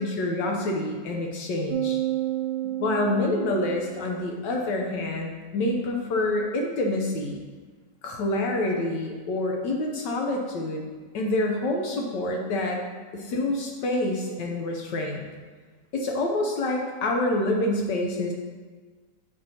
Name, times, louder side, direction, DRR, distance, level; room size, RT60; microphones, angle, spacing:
voice 1, 0.0-2.0 2.8-7.4 8.0-10.9 11.1-12.8 13.1-15.2 15.9-18.3, left 2 dB, 75° left, 1 dB, 1.3 m, -27 dB
sound 1, 1.7-4.2, right 13 dB, 90° right, 1.3 m, -30 dB
7.7 x 5.4 x 2.8 m, 1.4 s
omnidirectional pair, 2.0 m